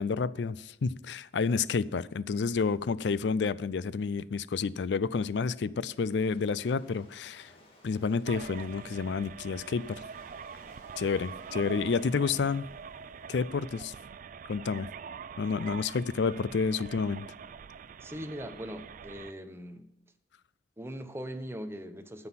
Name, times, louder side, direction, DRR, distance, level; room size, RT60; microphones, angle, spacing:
voice 1, 0.0-7.5 7.8-10.0 11.0-12.7 13.3-13.9 14.5-14.9 15.4-17.3, left 5 dB, 70° left, 0.4 m, -30 dB
Waves surf, 5.2-13.4, left 1 dB, 30° left, 2.3 m, -61 dB
sound 1, 8.3-19.3, right 6 dB, 45° right, 0.4 m, -44 dB
voice 2, 18.0-19.9 20.8-22.3, equal, 15° right, 0.8 m, -40 dB
9.4 x 7.9 x 5.7 m
head